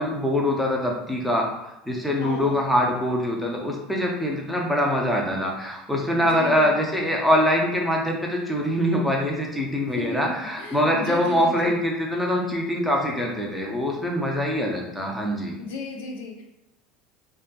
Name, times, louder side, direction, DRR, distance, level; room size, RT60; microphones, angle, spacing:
voice 1, 0.0-1.4 1.9-15.6, equal, ahead, -2 dB, 0.5 m, -24 dB
voice 2, 2.2-2.6 6.2-6.8 10.0-11.8 15.6-16.4, left 3 dB, 85° left, 2 dB, 0.5 m, -35 dB
2.5 x 2.5 x 2.2 m, 0.91 s
cardioid pair, 150°, 0 cm